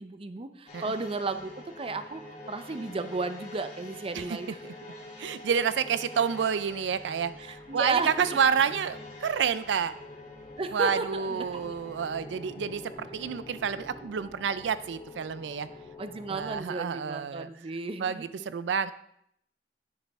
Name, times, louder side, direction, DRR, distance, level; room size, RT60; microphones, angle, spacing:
voice 1, 0.0-2.2 2.5-4.6 7.5-8.4 10.6-11.7 16.0-18.3, right 3 dB, 30° right, 10 dB, 0.5 m, -33 dB
sound 1, 0.7-17.4 17.7-17.8, left 1 dB, 40° left, 2.3 m, -47 dB
voice 2, 5.2-9.9 10.7-15.7 16.3-17.5 18.0-18.9, right 7 dB, 90° right, 14 dB, 0.4 m, -29 dB
sound 2, 6.3-16.6, left 2 dB, 25° left, 1.0 m, -49 dB
10.0 x 6.7 x 3.5 m, 0.73 s
head